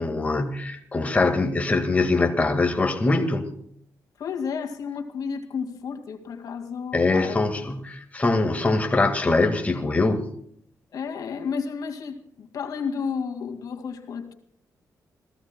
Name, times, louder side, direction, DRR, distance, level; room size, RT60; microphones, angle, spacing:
voice 1, 0.0-3.5 6.9-10.3, left 3 dB, 20° left, 4 dB, 2.0 m, -23 dB
voice 2, 4.2-7.4 10.9-14.3, left 6 dB, 75° left, 4 dB, 2.3 m, -32 dB
28.5 x 16.0 x 2.3 m, 0.66 s
cardioid pair, 105°, 6 cm